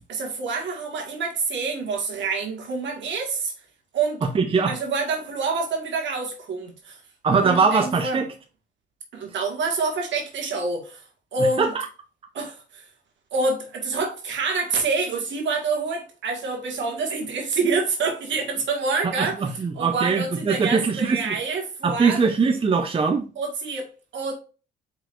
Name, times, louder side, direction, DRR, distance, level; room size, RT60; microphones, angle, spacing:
voice 1, 0.1-3.5 3.9-4.2 4.6-7.0 7.4-8.2 9.1-11.0 11.3-11.7 12.3-12.8 13.3-22.2 23.3-24.3, right 4 dB, 70° right, 1.7 m, -27 dB
voice 2, 4.3-4.7 7.2-8.3 11.6-11.7 19.2-21.4 21.8-23.3, right 5 dB, 25° right, 0.6 m, -21 dB
4.8 x 3.9 x 2.5 m
cardioid pair, 90°, 20 cm